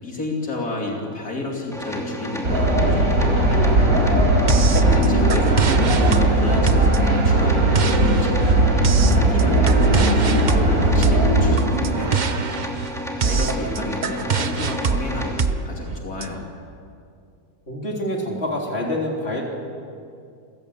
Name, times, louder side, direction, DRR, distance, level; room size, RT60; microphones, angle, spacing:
voice 1, 0.0-4.0 4.7-8.7 9.1-12.3 13.2-16.5, left 2 dB, 75° left, -1 dB, 3.2 m, -30 dB
sound 1, 1.7-15.4, equal, ahead, 2.6 m, -32 dB
sound 2, 2.4-11.5, right 1 dB, 70° right, 4.9 m, -18 dB
sound 3, 4.5-16.3, right 5 dB, 40° right, 0.8 m, -24 dB
voice 2, 13.2-13.6 17.7-19.4, left 1 dB, 40° left, -1 dB, 3.9 m, -27 dB
29.0 x 16.0 x 8.3 m, 2.4 s
omnidirectional pair, 1.6 m